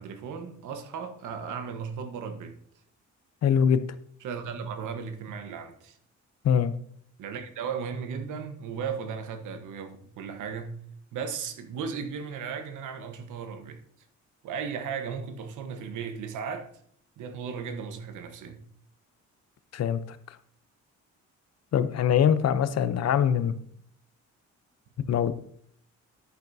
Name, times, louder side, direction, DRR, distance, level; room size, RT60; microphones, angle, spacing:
voice 1, 0.0-2.6 4.2-6.0 7.2-10.8 11.1-13.8 14.4-16.7 17.2-18.7, right 6 dB, 80° right, 1.2 m, -36 dB
voice 2, 3.4-3.8 6.4-6.7 19.7-20.2 21.7-23.5 25.1-25.3, left 8 dB, 55° left, 0.7 m, -23 dB
10.5 x 8.9 x 2.7 m
cardioid pair, 90°, 30 cm